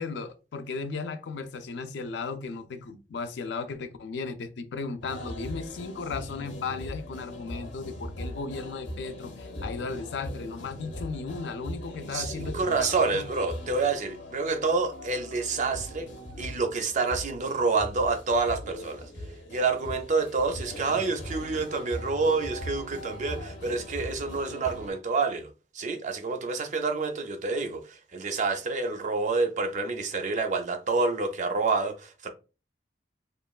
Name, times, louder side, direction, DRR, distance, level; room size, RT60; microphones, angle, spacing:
voice 1, 0.0-13.2, left 4 dB, 70° left, 0.4 m, -36 dB
sound 1, 5.0-24.9, equal, 90° left, 0.8 m, -40 dB
voice 2, 12.1-16.1 16.4-19.1 19.5-25.5 25.7-27.8 28.1-32.3, right 4 dB, 40° right, 0.4 m, -28 dB
3.0 x 2.2 x 2.3 m
head